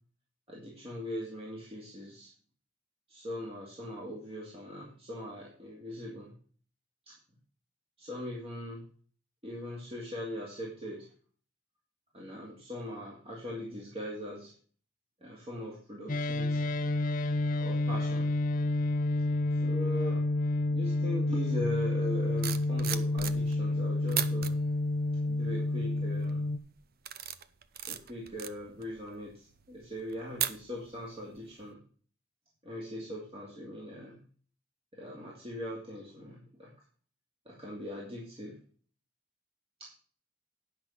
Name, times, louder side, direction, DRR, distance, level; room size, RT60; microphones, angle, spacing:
voice 1, 0.5-2.3 3.1-6.3 7.1-7.2 8.0-8.8 9.4-11.1 12.1-14.5 15.2-16.7 17.5-18.3 19.6-20.2 20.7-24.5 25.2-26.4 27.9-31.8 32.6-34.2 34.9-36.7 37.5-38.6 39.8-40.0, left 1 dB, 30° right, -4 dB, 2.6 m, -40 dB
sound 1, 16.1-26.6, left 2 dB, 45° left, 0.8 m, -29 dB
sound 2, 22.2-23.7 24.1-24.5 25.1-25.5 26.0-26.3 26.8-31.1 31.4-31.6, right 10 dB, 50° right, 0.7 m, -37 dB
10.0 x 5.9 x 6.5 m, 0.43 s
head